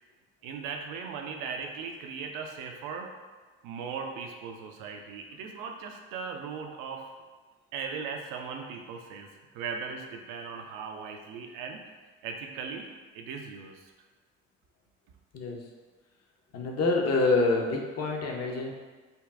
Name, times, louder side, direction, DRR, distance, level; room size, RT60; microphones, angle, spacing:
voice 1, 0.4-3.1 3.6-7.0 7.7-9.3 9.5-11.8 12.2-12.9 13.1-13.9, right 5 dB, 60° right, 3 dB, 0.5 m, -38 dB
voice 2, 15.3-15.6 16.5-18.7, left 3 dB, 45° left, 0 dB, 0.7 m, -26 dB
5.1 x 2.2 x 2.4 m, 1.3 s
figure-of-eight pair, 45°, 36 cm